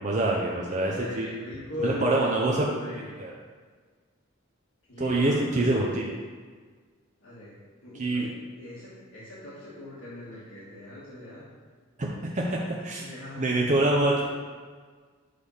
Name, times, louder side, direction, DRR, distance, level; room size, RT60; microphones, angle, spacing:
voice 1, 0.0-1.3 1.8-2.6 3.2-3.3 5.0-6.0 7.9-8.3 12.0-13.0 13.4-14.3, right 2 dB, 35° right, -3 dB, 0.6 m, -25 dB
voice 2, 0.9-3.2 4.9-6.1 7.2-7.5 7.8-8.3 8.6-11.5 12.7-13.8 14.2-14.3, left 1 dB, 65° left, -9 dB, 1.4 m, -39 dB
6.5 x 3.4 x 5.6 m, 1.5 s
head